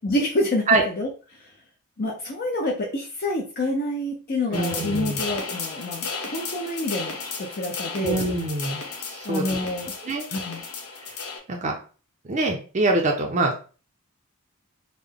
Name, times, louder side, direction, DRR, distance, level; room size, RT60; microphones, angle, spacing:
voice 1, 0.0-1.1 1.4-1.5 2.0-8.2 9.2-9.9 10.3-10.6, left 1 dB, 45° left, -1 dB, 0.6 m, -27 dB
sound 1, 4.5-11.4, left 4 dB, 80° left, 0.8 m, -34 dB
voice 2, 4.5-5.2 8.0-8.8 9.1-9.6 10.0-10.3 11.0-11.1 11.5-11.7 12.2-13.6, right 2 dB, 35° right, 1 dB, 0.5 m, -24 dB
3.7 x 2.1 x 3.4 m, 0.35 s
head